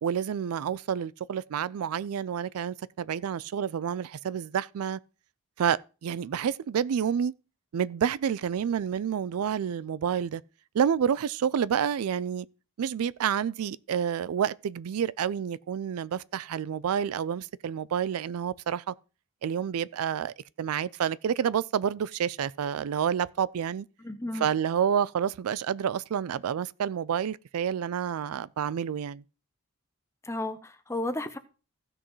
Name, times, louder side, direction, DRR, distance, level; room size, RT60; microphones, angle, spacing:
voice 1, 0.0-5.0 5.6-7.3 7.7-10.4 10.7-12.5 12.8-18.9 19.4-23.9 24.3-29.2, right 8 dB, 85° right, 0.4 m, -29 dB
voice 2, 24.0-24.5 30.2-31.4, left 1 dB, 10° left, 0.7 m, -33 dB
16.0 x 6.2 x 3.1 m
head